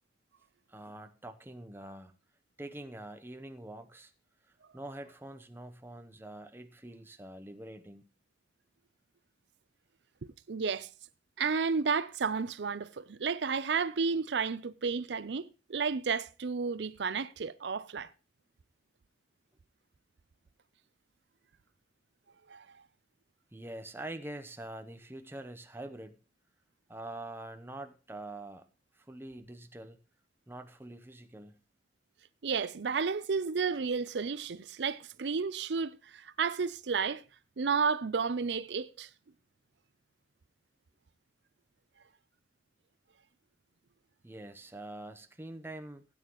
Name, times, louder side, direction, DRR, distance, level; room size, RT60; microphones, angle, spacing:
voice 1, 0.7-2.1 2.6-4.1 4.7-8.1 23.5-26.2 26.9-28.7 28.9-30.0 30.5-31.6 44.2-46.1, right 1 dB, 15° right, 0.8 m, -45 dB
voice 2, 10.5-10.9 11.4-18.1 22.5-22.6 32.4-37.2 37.6-39.1, right 5 dB, 80° right, 0.6 m, -32 dB
16.5 x 9.3 x 3.0 m
head